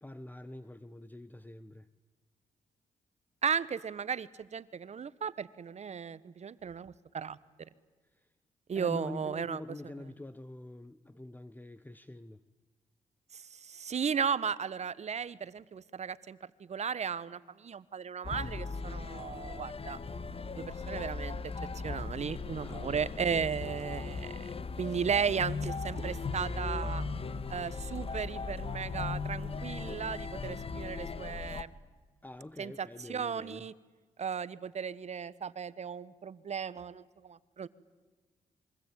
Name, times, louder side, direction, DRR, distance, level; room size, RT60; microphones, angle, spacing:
voice 1, 0.0-1.9 8.1-8.3 8.7-12.4 22.6-23.4 32.2-33.7, left 1 dB, 15° left, 1.1 m, -46 dB
voice 2, 3.4-7.4 8.7-9.6 13.3-16.4 16.7-20.0 20.6-21.4 21.8-24.3 24.8-27.0 27.5-31.7 32.6-33.7 34.2-37.7, right 7 dB, 55° right, 1.2 m, -35 dB
sound 1, 18.2-31.6, left 4 dB, 45° left, 1.6 m, -38 dB
27.0 x 24.0 x 9.2 m
cardioid pair, 60°, 14 cm